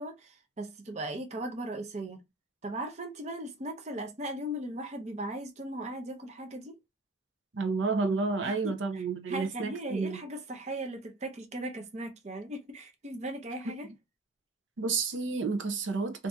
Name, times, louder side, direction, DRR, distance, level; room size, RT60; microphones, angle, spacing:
voice 1, 0.0-2.2 2.6-6.8 8.4-13.9, right 1 dB, 40° right, 0.6 m, -38 dB
voice 2, 7.5-10.2 14.8-16.3, right 4 dB, 85° right, 0.7 m, -30 dB
2.6 x 2.6 x 3.4 m
head